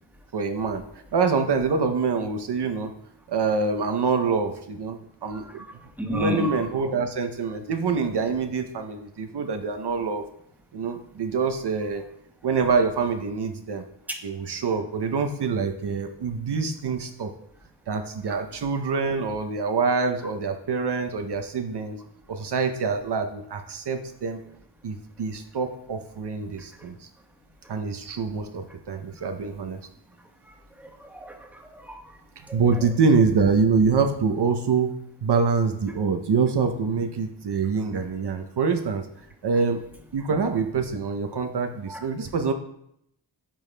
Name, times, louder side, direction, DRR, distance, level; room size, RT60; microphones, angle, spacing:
voice 1, 0.3-0.8 1.1-2.9 3.3-5.6 6.1-10.2 10.7-12.0 12.4-13.8 14.2-17.3 17.9-22.0 22.3-24.4 24.8-27.1 27.7-29.8 32.4-34.9 35.2-39.1 39.4-42.5, right 5 dB, 60° right, 6 dB, 0.7 m, -25 dB
voice 2, 6.0-6.5 14.1-14.2 30.8-32.0 32.5-32.6 41.9-42.0, left 2 dB, 5° right, 2 dB, 1.2 m, -31 dB
8.9 x 4.7 x 2.2 m, 0.75 s
cardioid pair, 45°, 45 cm